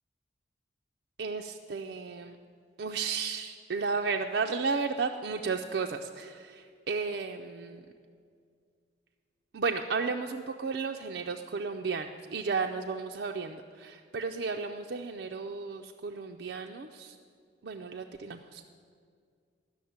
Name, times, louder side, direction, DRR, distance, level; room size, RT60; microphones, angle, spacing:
voice 1, 1.2-2.3 2.8-6.3 6.9-7.8 9.5-17.1 17.6-18.7, right 4 dB, 70° right, 3 dB, 0.5 m, -33 dB
13.0 x 6.4 x 9.4 m, 2.2 s
head